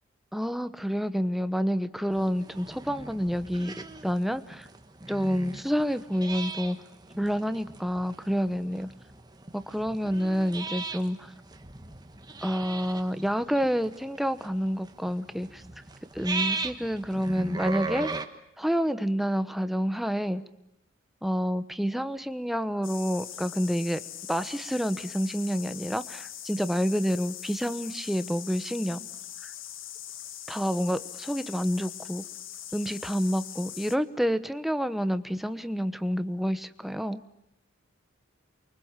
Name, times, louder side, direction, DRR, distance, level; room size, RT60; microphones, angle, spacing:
voice 1, 0.3-4.7 5.1-6.8 7.2-8.9 9.5-11.3 12.4-15.6 16.1-18.1 18.6-20.4 21.2-24.0 24.3-29.1 29.4-29.5 30.5-32.2 32.7-37.2, equal, ahead, 11 dB, 1.0 m, -28 dB
sound 1, 2.1-18.3, right 3 dB, 20° right, 1.5 m, -38 dB
sound 2, 22.8-34.0, left 11 dB, 75° left, 1.4 m, -42 dB
29.0 x 24.0 x 7.4 m, 0.82 s
head